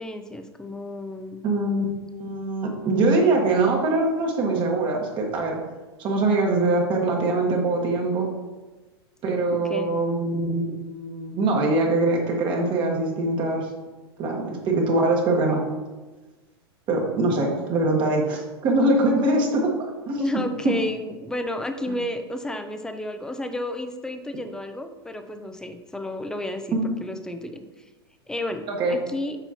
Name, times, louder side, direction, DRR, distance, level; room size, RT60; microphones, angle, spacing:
voice 1, 0.0-1.4 9.5-10.0 20.2-27.9 28.3-29.4, left 1 dB, 5° left, 6 dB, 0.6 m, -32 dB
voice 2, 1.4-1.8 2.2-5.6 6.0-8.3 9.2-13.7 14.2-15.6 16.9-19.7 20.1-20.2 20.6-20.7 26.7-27.0 28.7-29.0, right 2 dB, 35° right, 0 dB, 1.4 m, -23 dB
7.1 x 5.4 x 2.9 m, 1.2 s
hypercardioid pair, 115°, 13 cm